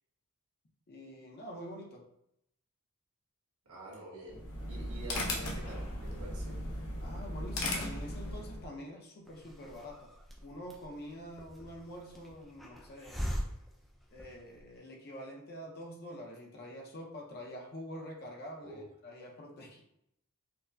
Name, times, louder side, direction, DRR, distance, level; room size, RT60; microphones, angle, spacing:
voice 1, 0.9-2.0 7.0-10.1 10.4-13.2 14.1-19.8, equal, 45° left, 0 dB, 0.6 m, -46 dB
voice 2, 3.6-4.4 4.7-6.6 18.6-18.8, right 1 dB, 75° right, -5 dB, 1.3 m, -47 dB
sound 1, 4.3-8.7, left 1 dB, 80° left, 0.7 m, -37 dB
Hiss, 9.3-14.7, equal, ahead, 0.4 m, -42 dB
4.4 x 2.1 x 2.6 m, 0.78 s
head